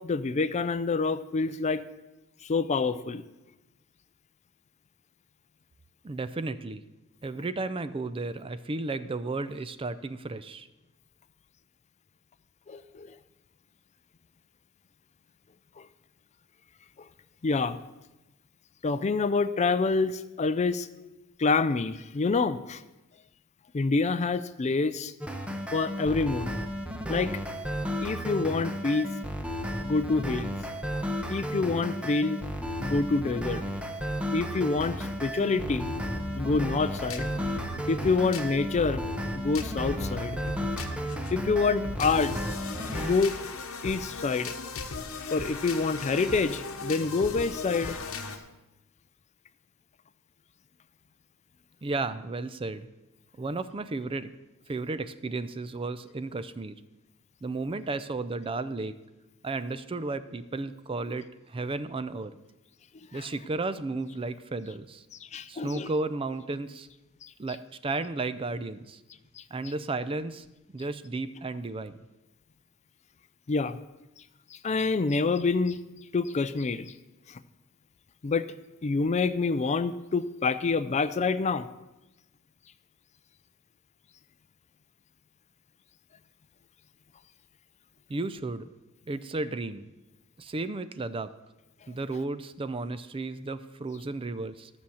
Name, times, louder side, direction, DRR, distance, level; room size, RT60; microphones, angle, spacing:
voice 1, 0.0-1.8 2.4-3.2 12.7-13.1 15.8-15.9 17.4-17.8 18.8-20.9 21.4-22.8 23.7-25.1 25.7-26.5 27.1-27.3 28.0-29.1 29.8-30.5 31.3-32.4 32.8-33.6 34.3-35.9 36.3-37.3 37.9-39.0 39.3-40.4 40.9-41.0 41.3-42.3 42.9-43.3 43.8-44.5 45.3-48.0 63.1-63.3 65.2-65.9 67.2-67.3 69.4-69.5 73.5-73.8 74.5-75.8 76.1-76.9 77.3-77.4 78.2-78.5 78.8-81.7, left 4 dB, 30° left, 13 dB, 0.4 m, -27 dB
voice 2, 6.0-6.8 7.2-10.7 51.8-52.9 53.4-54.4 54.7-56.8 57.4-58.9 59.4-62.3 63.1-65.0 65.5-66.9 67.4-69.0 69.5-70.4 70.7-72.0 88.1-88.7 89.1-89.9 90.4-91.3 91.9-94.7, right 3 dB, 25° right, 13 dB, 0.4 m, -33 dB
sound 1, 25.2-43.2, equal, 5° right, 0.8 m, -33 dB
sound 2, 34.7-48.4, left 3 dB, 70° left, 1.1 m, -38 dB
13.0 x 6.2 x 7.1 m, 0.99 s
head